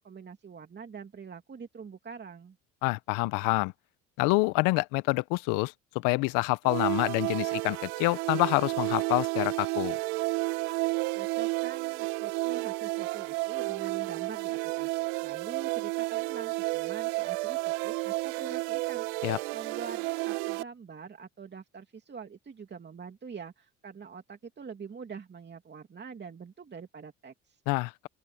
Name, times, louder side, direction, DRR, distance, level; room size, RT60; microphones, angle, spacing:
voice 1, 0.0-2.6 11.1-19.3 19.5-27.6, right 6 dB, 30° right, 2.6 m, -45 dB
voice 2, 2.8-3.7 4.2-10.0 19.2-19.4 27.7-28.1, left 25 dB, 75° left, 0.9 m, -27 dB
sound 1, 6.6-20.6, right 25 dB, 80° right, 0.9 m, -31 dB
open air
supercardioid pair, 75°, 33 cm